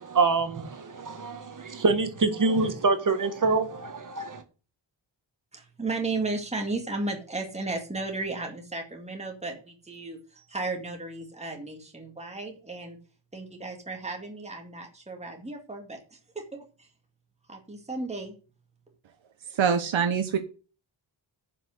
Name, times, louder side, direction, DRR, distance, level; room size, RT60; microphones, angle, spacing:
voice 1, 0.0-4.4, right 3 dB, 40° right, 1.7 m, -26 dB
voice 2, 5.5-13.0 13.3-16.9 17.5-18.3, right 3 dB, 15° right, 2.2 m, -34 dB
voice 3, 19.6-20.4, right 7 dB, 85° right, 1.3 m, -24 dB
10.5 x 6.2 x 7.9 m
wide cardioid pair, 165°, 46 cm